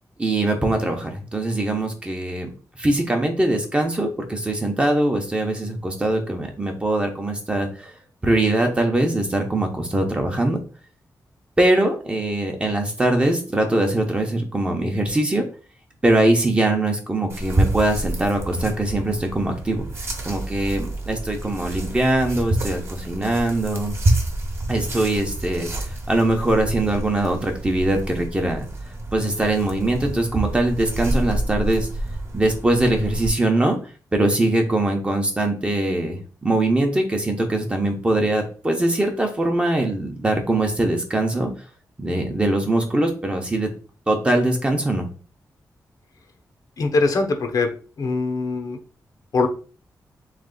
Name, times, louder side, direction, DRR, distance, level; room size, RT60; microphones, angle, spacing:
voice 1, 0.2-7.9 8.2-10.6 11.6-15.5 16.0-19.9 20.2-23.9 24.7-25.7 26.1-28.7 29.1-31.9 32.3-33.8 34.1-41.5 42.0-43.7 44.1-45.1, right 1 dB, 15° right, 3 dB, 0.8 m, -22 dB
sound 1, 17.3-33.3, right 1 dB, 35° right, 1.0 m, -28 dB
voice 2, 46.8-47.7 48.0-48.8 49.3-49.5, left 3 dB, 60° left, 4 dB, 0.8 m, -22 dB
3.6 x 3.3 x 3.8 m, 0.38 s
wide cardioid pair, 160°, 7 cm